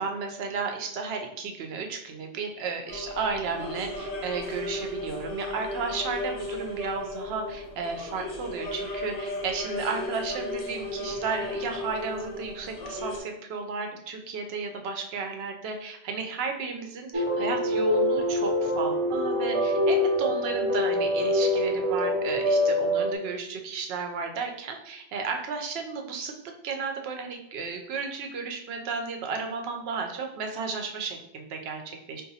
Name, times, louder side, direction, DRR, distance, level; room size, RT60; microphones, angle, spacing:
voice 1, 0.0-17.1 17.4-26.3 26.6-32.2, right 4 dB, 80° right, 4 dB, 0.8 m, -33 dB
sound 1, 2.9-13.2, left 1 dB, 45° left, 0.6 m, -35 dB
sound 2, 17.1-23.2, left 1 dB, 45° right, 0.5 m, -25 dB
3.7 x 2.5 x 2.7 m, 0.75 s
omnidirectional pair, 1.0 m